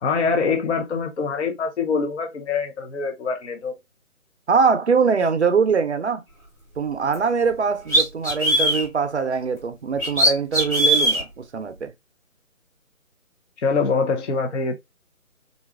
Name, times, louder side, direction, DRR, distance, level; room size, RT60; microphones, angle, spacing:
voice 1, 0.0-3.7 13.6-14.8, left 5 dB, 55° left, 0.7 m, -24 dB
voice 2, 4.5-6.2 6.8-11.9, right 5 dB, 55° right, 0.5 m, -22 dB
sound 1, 7.1-7.2 7.9-8.8 10.0-11.2, right 1 dB, 15° left, 1.1 m, -19 dB
3.8 x 2.3 x 2.3 m
hypercardioid pair, 165°, 42 cm